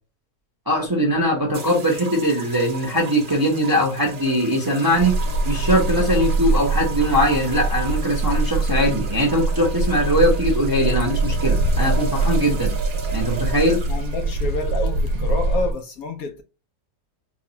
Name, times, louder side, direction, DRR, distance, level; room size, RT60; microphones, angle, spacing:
voice 1, 0.7-5.2 5.4-12.7 13.1-13.8, equal, 20° right, 0.7 m, -21 dB
sound 1, 1.5-15.8, right 5 dB, 50° right, 0.8 m, -36 dB
sound 2, 4.9-15.7, right 3 dB, 70° right, 1.0 m, -23 dB
voice 2, 13.7-16.4, left 3 dB, 70° left, 1.0 m, -29 dB
4.6 x 2.3 x 2.8 m
omnidirectional pair, 1.8 m